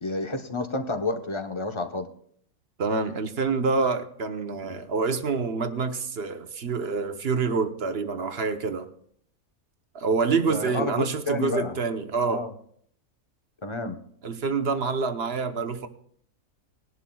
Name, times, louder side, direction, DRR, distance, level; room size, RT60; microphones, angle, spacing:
voice 1, 0.0-2.1 10.5-11.8 12.2-12.5 13.6-14.0, left 2 dB, 25° left, 6 dB, 0.8 m, -30 dB
voice 2, 2.8-8.9 9.9-12.5 14.2-15.9, right 4 dB, 50° right, 8 dB, 1.0 m, -27 dB
20.0 x 11.5 x 2.3 m, 0.62 s
omnidirectional pair, 1.5 m